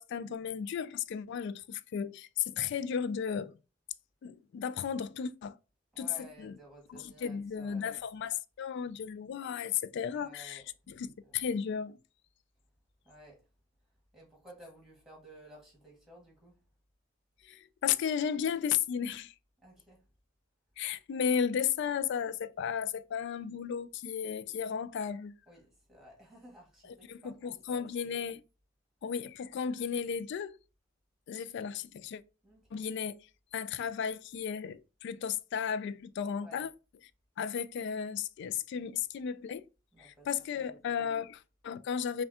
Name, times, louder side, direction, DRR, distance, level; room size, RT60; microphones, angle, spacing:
voice 1, 0.0-3.6 4.2-5.5 6.0-6.1 6.4-6.5 6.9-10.6 11.0-12.0 17.4-19.3 20.8-25.3 27.1-28.4 29.0-30.6 31.3-32.2 32.7-33.1 33.5-36.7 37.4-39.6 40.0-42.2, left 7 dB, 60° left, 0.3 m, -34 dB
voice 2, 5.9-8.0 10.1-10.9 11.2-11.5 13.0-13.4 14.1-16.6 19.6-20.0 25.5-28.2 32.4-32.9 36.4-36.7 38.7-39.0 39.9-41.1, equal, 5° right, 1.8 m, -55 dB
5.6 x 2.2 x 2.8 m
head